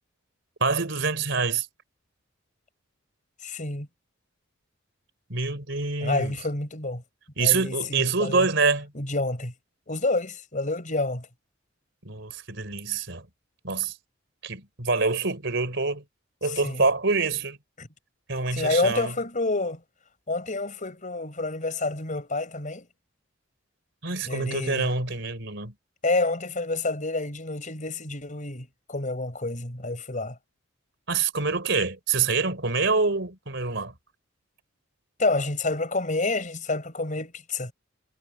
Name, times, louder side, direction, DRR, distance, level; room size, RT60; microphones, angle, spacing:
voice 1, 0.6-1.7 5.3-6.3 7.4-8.9 12.0-13.3 13.6-13.9 14.4-16.1 16.4-17.6 18.3-19.1 24.0-25.7 31.1-33.9, right 4 dB, 65° right, 4.3 m, -26 dB
voice 2, 3.4-3.9 6.0-7.0 7.4-8.5 9.0-9.5 9.9-11.3 16.6-16.8 17.8-17.9 18.5-19.8 20.3-22.9 24.2-24.9 26.0-30.4 35.2-37.7, left 2 dB, 40° left, 5.3 m, -28 dB
head